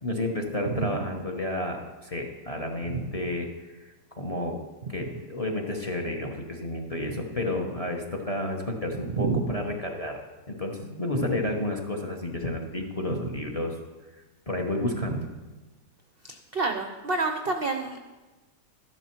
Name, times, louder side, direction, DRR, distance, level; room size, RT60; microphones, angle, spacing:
voice 1, 0.0-3.9 4.2-4.6 4.9-10.2 10.5-13.7 14.5-15.2, left 1 dB, 25° left, 2 dB, 0.8 m, -31 dB
voice 2, 9.1-9.5 11.1-11.3 13.1-13.2 16.3-18.0, right 4 dB, 60° right, 5 dB, 0.6 m, -29 dB
12.5 x 10.5 x 4.5 m, 1.2 s
omnidirectional pair, 1.9 m